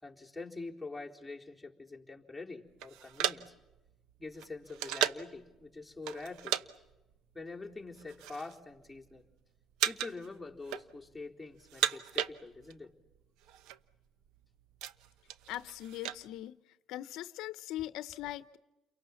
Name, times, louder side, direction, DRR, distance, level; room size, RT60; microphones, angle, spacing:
voice 1, 0.0-3.5 4.2-6.7 7.3-9.3 9.9-12.9, left 3 dB, 5° left, 3.8 m, -45 dB
sound 1, 2.8-5.4 6.0-6.7 6.9-7.1 7.8-8.6 8.9-9.3 9.8-10.3 10.5-11.2 11.6-12.8 13.1-13.2 13.4-13.8 14.3-16.2, right 11 dB, 80° right, 1.0 m, -35 dB
voice 2, 15.5-16.6 16.9-18.6, left 14 dB, 75° left, 0.8 m, -40 dB
30.0 x 23.5 x 7.2 m
cardioid pair, 95°, 0 cm